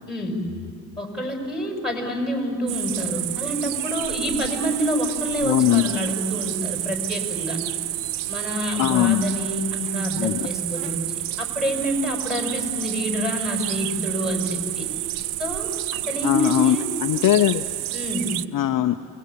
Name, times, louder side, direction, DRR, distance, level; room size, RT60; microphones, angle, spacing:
voice 1, 1.0-7.6 8.3-14.9 15.4-16.9 17.9-18.3, equal, ahead, 2 dB, 6.2 m, -27 dB
sound 1, 2.7-18.4, right 16 dB, 80° right, 0.7 m, -29 dB
voice 2, 5.4-6.0 8.8-9.2 10.2-10.4 16.2-16.8 17.0-17.6 18.5-19.0, left 13 dB, 45° left, 8 dB, 0.8 m, -20 dB
28.0 x 21.0 x 8.6 m, 2.4 s
supercardioid pair, 90°, 44 cm